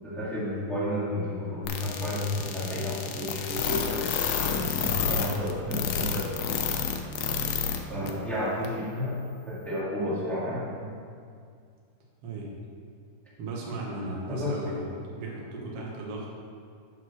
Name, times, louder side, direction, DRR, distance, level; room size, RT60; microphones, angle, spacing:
voice 1, 0.0-3.9 4.6-6.7 7.9-9.2 9.5-10.9 14.3-14.7, left 1 dB, ahead, -9 dB, 1.0 m, -31 dB
sound 1, 1.6-7.8 8.1-8.2 8.6-8.7, left 7 dB, 85° left, 2.8 m, -29 dB
voice 2, 13.4-14.9 15.2-16.3, right 2 dB, 70° right, -3 dB, 1.4 m, -36 dB
7.3 x 6.4 x 6.2 m, 2.2 s
omnidirectional pair, 4.5 m